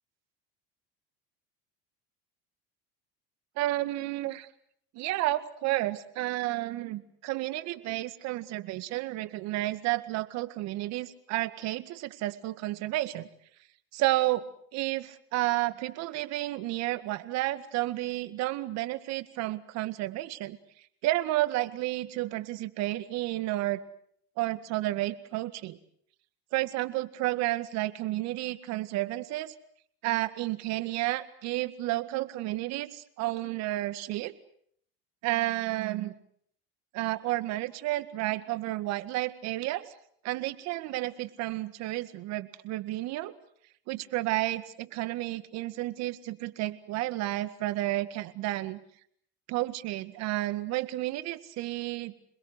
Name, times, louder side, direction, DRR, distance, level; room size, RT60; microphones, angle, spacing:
voice 1, 3.6-4.5 4.9-13.3 13.9-14.4 14.7-20.6 21.0-23.8 24.4-25.8 26.5-29.5 30.0-34.3 35.2-36.1 36.9-39.9 40.2-43.3 43.9-48.8 49.5-52.1, right 17 dB, 60° right, 13 dB, 2.0 m, -31 dB
27.5 x 21.0 x 8.2 m, 0.66 s
supercardioid pair, 100°, 30 cm